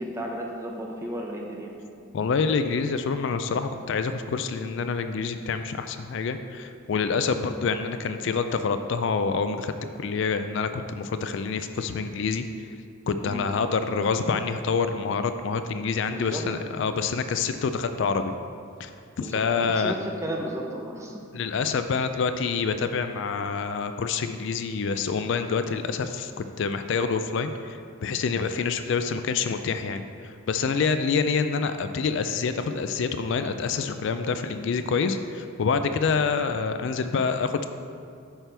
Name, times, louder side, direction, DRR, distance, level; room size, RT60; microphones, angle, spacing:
voice 1, 0.0-1.7 13.2-13.5 16.1-16.4 19.2-21.1, right 1 dB, 15° right, 0 dB, 0.7 m, -34 dB
voice 2, 2.1-9.7 10.0-12.5 13.1-18.3 18.8-18.9 19.2-20.0 21.3-26.3 26.6-37.7, left 5 dB, 60° left, 9 dB, 0.3 m, -27 dB
8.9 x 5.9 x 3.4 m, 2.3 s
head